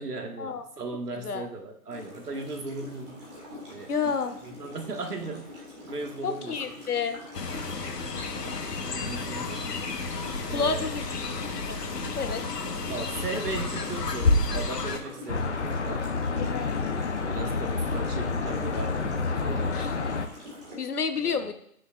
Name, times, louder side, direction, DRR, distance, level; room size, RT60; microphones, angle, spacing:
voice 1, 0.0-3.3 3.7-6.8 8.8-9.8 10.5-10.9 12.9-16.1 17.3-20.1 21.2-21.5, right 3 dB, 75° right, 3 dB, 1.8 m, -37 dB
sound 1, 1.9-20.8, left 1 dB, 20° right, 1.8 m, -45 dB
voice 2, 3.9-4.4 6.2-7.2 10.5-11.1 11.7-11.8 12.1-12.4 16.4-16.8 19.7-19.9 20.8-21.5, left 5 dB, 70° left, 8 dB, 1.2 m, -29 dB
Fowl, 7.3-15.0, left 3 dB, 90° left, 1.4 m, -30 dB
sound 2, 15.3-20.3, left 4 dB, 45° left, 0.9 m, -29 dB
15.5 x 6.4 x 2.5 m, 0.71 s
hypercardioid pair, 170°, 47 cm